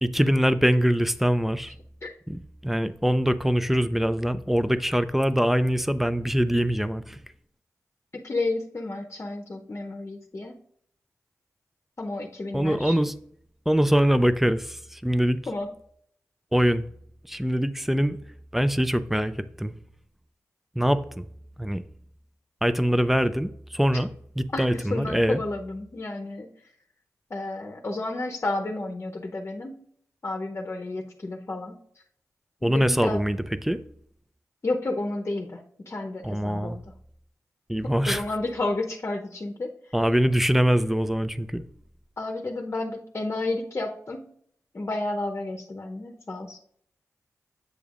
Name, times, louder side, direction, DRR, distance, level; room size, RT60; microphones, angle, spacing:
voice 1, 0.0-1.7 2.3-7.2 12.5-13.1 13.7-15.4 16.5-16.9 17.3-18.2 18.5-19.8 20.8-21.2 21.6-21.8 22.6-24.1 24.4-25.4 32.6-33.8 36.2-36.8 37.7-38.2 39.9-41.6, equal, 5° right, 0.4 m, -23 dB
voice 2, 8.1-10.6 12.0-13.0 15.5-15.7 24.5-26.5 27.3-29.8 30.2-31.8 32.6-33.2 34.6-35.6 35.9-36.8 37.8-39.7 42.2-44.3 44.7-46.6, left 2 dB, 40° left, 0.8 m, -31 dB
8.0 x 6.9 x 2.5 m
wide cardioid pair, 75°, 6 cm